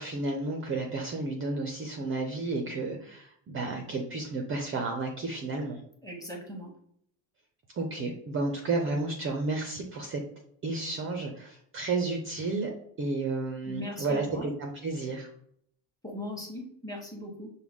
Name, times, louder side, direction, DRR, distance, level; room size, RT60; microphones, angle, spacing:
voice 1, 0.0-5.8 7.8-10.2 10.6-12.7 13.0-15.3, right 3 dB, 25° right, 3 dB, 0.4 m, -32 dB
voice 2, 6.0-6.7 13.7-14.5 16.0-17.5, left 1 dB, 5° left, 0 dB, 0.9 m, -39 dB
6.1 x 2.1 x 3.5 m, 0.68 s
cardioid pair, 145°, 50 cm